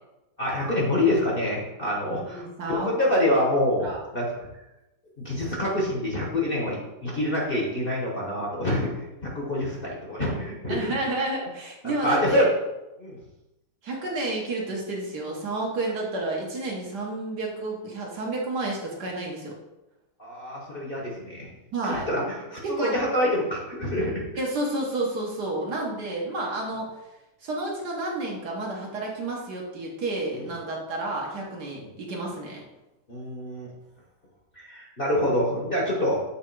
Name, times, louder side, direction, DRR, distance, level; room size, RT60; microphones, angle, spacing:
voice 1, 0.4-4.5 5.2-8.9 9.2-10.9 11.8-12.5 13.0-13.2 20.2-21.5 21.8-24.2 30.3-30.5 31.7-31.9 33.1-33.7 34.5-36.2, left 1 dB, 35° left, -3 dB, 1.1 m, -26 dB
voice 2, 2.1-2.9 3.8-4.0 10.7-12.5 13.8-19.5 21.7-22.0 22.6-23.0 24.4-26.9 27.4-32.6, right 2 dB, 60° right, -2 dB, 1.7 m, -30 dB
7.3 x 3.4 x 4.6 m, 0.99 s
omnidirectional pair, 2.1 m